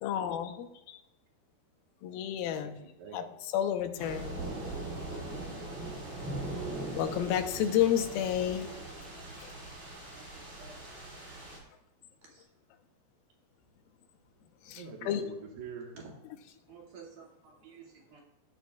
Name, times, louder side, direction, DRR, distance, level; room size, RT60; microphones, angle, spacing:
voice 1, 0.0-0.7 2.0-2.8 3.1-3.2 3.5-4.4 6.9-8.7 14.7-14.8 15.1-15.2, left 10 dB, 75° left, 2.6 m, -30 dB
voice 2, 2.6-3.4 5.6-5.9 14.8-16.2, right 5 dB, 75° right, 3.4 m, -46 dB
sound 1, 4.0-11.6, right 2 dB, 35° right, 5.1 m, -40 dB
voice 3, 10.1-10.8 12.3-12.5 16.7-18.2, right 5 dB, 55° right, 3.6 m, -52 dB
16.0 x 10.5 x 2.4 m
omnidirectional pair, 4.6 m